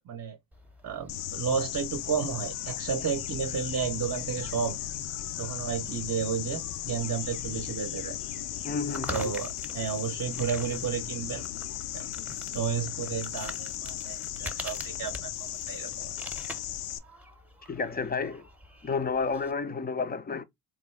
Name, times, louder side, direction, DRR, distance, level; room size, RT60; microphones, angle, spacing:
voice 1, 0.1-0.4 0.8-4.8 5.4-8.2 9.1-11.5 11.9-12.1 12.5-16.1, right 7 dB, 35° right, 0.8 m, -32 dB
sound 1, 0.5-19.5, equal, 5° right, 0.8 m, -46 dB
sound 2, 1.1-17.0, left 12 dB, 80° left, 0.6 m, -36 dB
voice 2, 8.6-9.3 17.7-18.5 18.8-20.4, left 5 dB, 20° left, 0.5 m, -31 dB
3.8 x 2.3 x 3.2 m
hypercardioid pair, 55°, 50 cm